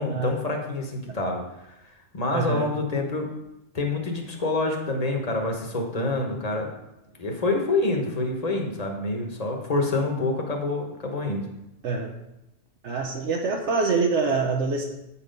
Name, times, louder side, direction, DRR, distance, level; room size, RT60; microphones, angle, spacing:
voice 1, 0.0-1.7 2.1-3.3 3.7-6.7 7.2-11.5, left 2 dB, 35° left, 2 dB, 1.1 m, -27 dB
voice 2, 2.3-2.7 11.8-12.1 12.8-14.8, right 4 dB, 75° right, 1 dB, 1.1 m, -25 dB
8.2 x 4.3 x 5.1 m, 0.91 s
omnidirectional pair, 1.2 m